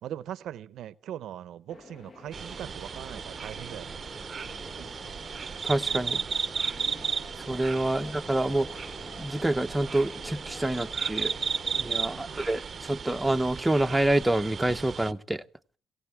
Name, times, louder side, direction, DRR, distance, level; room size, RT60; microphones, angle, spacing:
voice 1, 0.0-4.0 4.8-4.9 12.1-12.4, right 11 dB, 80° right, 0.7 m, -40 dB
sound 1, 1.7-12.4, left 3 dB, 40° left, 1.2 m, -49 dB
sound 2, 2.3-15.1, right 6 dB, 45° right, 0.7 m, -35 dB
voice 2, 5.6-6.2 7.5-8.7 9.2-11.3 11.8-15.4, right 1 dB, 10° right, 0.8 m, -27 dB
25.0 x 16.5 x 3.5 m
cardioid pair, 90°, 0 cm